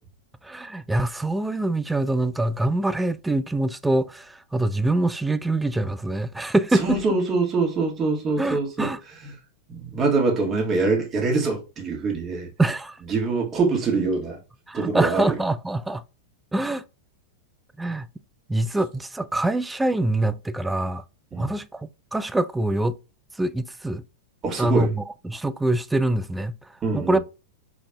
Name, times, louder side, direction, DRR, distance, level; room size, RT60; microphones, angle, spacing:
voice 1, 0.4-7.0 8.4-9.0 12.6-13.0 14.7-16.0 16.5-16.8 17.8-18.1 18.5-21.0 21.3-23.0 23.4-24.0 24.6-26.6 26.9-27.2, right 2 dB, 5° right, 0.4 m, -24 dB
voice 2, 6.7-8.9 9.2-9.3 9.7-12.5 13.1-14.4 14.7-15.4 21.3-21.5 24.4-24.9 26.8-27.2, right 3 dB, 25° right, 1.9 m, -24 dB
4.8 x 4.0 x 2.2 m
figure-of-eight pair, 95°, 0 cm